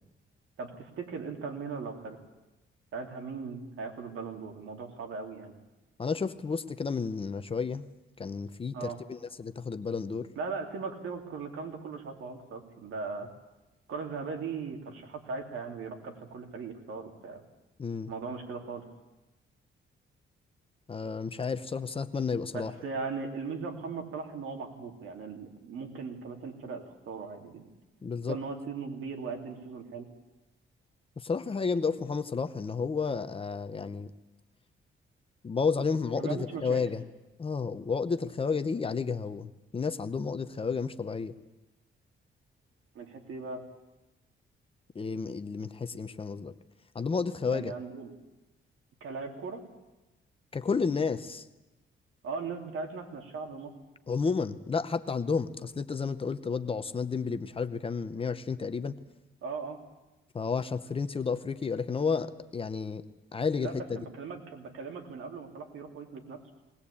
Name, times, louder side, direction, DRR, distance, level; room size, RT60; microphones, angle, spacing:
voice 1, 0.6-2.2 2.9-5.5 8.7-9.0 10.3-13.3 13.9-17.4 18.1-18.9 22.5-27.6 28.3-30.1 36.2-36.8 42.9-43.6 47.5-48.1 49.0-49.6 52.2-53.7 59.4-59.8 63.6-66.4, right 4 dB, 90° right, 3 dB, 3.1 m, -38 dB
voice 2, 6.0-7.8 8.2-10.3 17.8-18.1 20.9-22.7 28.0-28.4 31.2-34.1 35.4-37.1 37.4-41.3 44.9-46.5 46.9-47.7 50.5-51.5 54.1-59.0 60.3-63.0 63.3-64.0, left 5 dB, 25° left, 11 dB, 0.8 m, -31 dB
20.0 x 19.5 x 8.5 m, 1.0 s
wide cardioid pair, 150°, 21 cm